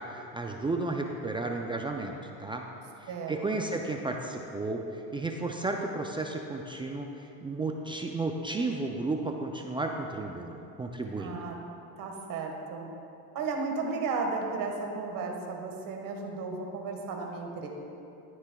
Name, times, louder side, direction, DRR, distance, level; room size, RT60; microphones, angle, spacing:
voice 1, 0.1-2.1 2.4-2.7 3.0-11.4, right 2 dB, 15° right, 2 dB, 0.3 m, -33 dB
voice 2, 3.1-3.8 11.2-11.6 12.0-12.9 13.3-17.7, right 4 dB, 50° right, 1 dB, 1.6 m, -34 dB
13.0 x 9.4 x 2.3 m, 2.7 s
supercardioid pair, 115°, 43 cm